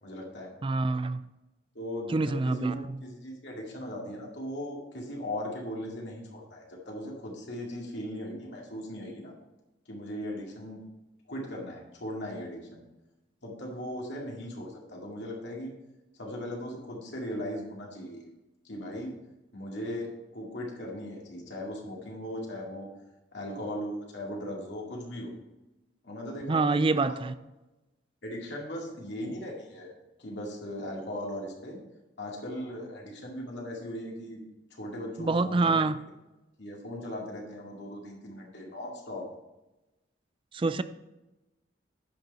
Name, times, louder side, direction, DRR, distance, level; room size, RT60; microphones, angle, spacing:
voice 1, 0.0-0.5 1.7-9.3 9.9-10.8 11.3-12.8 13.4-15.7 16.2-18.2 18.6-19.1 19.5-20.1 20.3-22.9 23.3-25.3 26.0-26.8 27.1-27.2 28.2-29.9 30.2-31.8 32.2-34.4 34.7-35.8 36.6-39.3, left 1 dB, 65° left, 2.3 m, -38 dB
voice 2, 0.6-1.2 2.1-3.0 26.5-27.3 35.2-36.0 40.5-40.8, right 3 dB, 25° right, 0.4 m, -26 dB
10.0 x 6.6 x 4.2 m
head